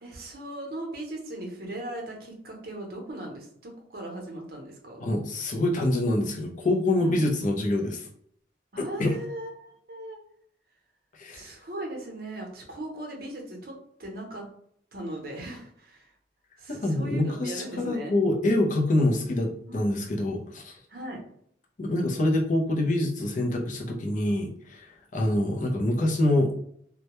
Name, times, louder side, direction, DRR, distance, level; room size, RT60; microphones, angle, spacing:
voice 1, 0.0-5.0 6.9-7.2 8.7-10.2 11.3-14.5 14.9-16.1 16.6-18.1 19.7-20.0 20.9-21.2, right 1 dB, 55° right, 0 dB, 0.7 m, -38 dB
voice 2, 5.0-8.1 8.8-9.1 11.2-11.5 16.7-20.8 21.8-24.9 25.1-26.5, left 1 dB, 45° left, 0 dB, 0.5 m, -26 dB
2.2 x 2.1 x 2.9 m, 0.66 s
head